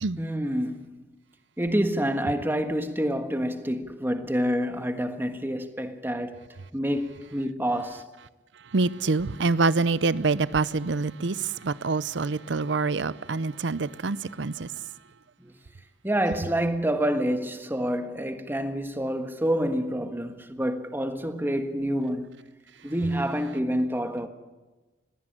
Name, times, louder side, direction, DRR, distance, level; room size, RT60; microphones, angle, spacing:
voice 1, 0.2-1.0 1.6-8.0 15.4-15.5 16.0-22.3 22.8-24.3, equal, 10° right, 1.5 m, -28 dB
voice 2, 8.7-14.7, right 3 dB, 90° right, 0.7 m, -26 dB
20.0 x 16.0 x 9.0 m
head